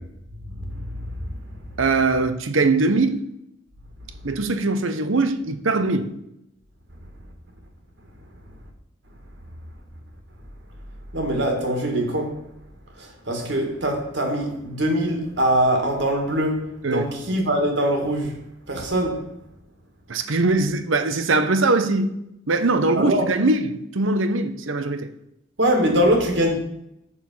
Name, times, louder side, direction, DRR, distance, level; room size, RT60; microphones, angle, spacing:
voice 1, 0.7-1.1 11.1-12.4 13.0-18.4 18.7-19.3 23.0-23.3 25.6-26.5, right 1 dB, 60° right, 2.0 m, -23 dB
voice 2, 1.8-3.2 4.2-6.1 16.8-17.1 20.1-22.1 22.5-25.1, right 3 dB, 80° right, 0.9 m, -21 dB
7.1 x 6.6 x 5.5 m
head